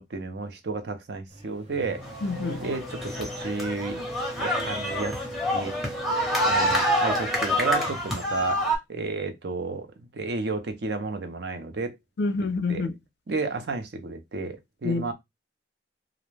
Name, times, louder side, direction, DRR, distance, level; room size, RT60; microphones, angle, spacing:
voice 1, 0.0-2.0 2.6-4.0 4.4-5.2 5.5-5.7 6.4-8.6 8.9-12.0 12.4-12.8 13.3-15.1, right 3 dB, 65° right, 0.5 m, -32 dB
Race car auto racing / Accelerating revving vroom, 1.3-8.6, right 1 dB, 30° right, 0.9 m, -38 dB
sound 1, 2.1-8.8, equal, ahead, 0.7 m, -27 dB
voice 2, 2.2-2.6 12.2-12.9 14.8-15.0, left 3 dB, 65° left, 0.4 m, -27 dB
2.4 x 2.1 x 3.1 m
head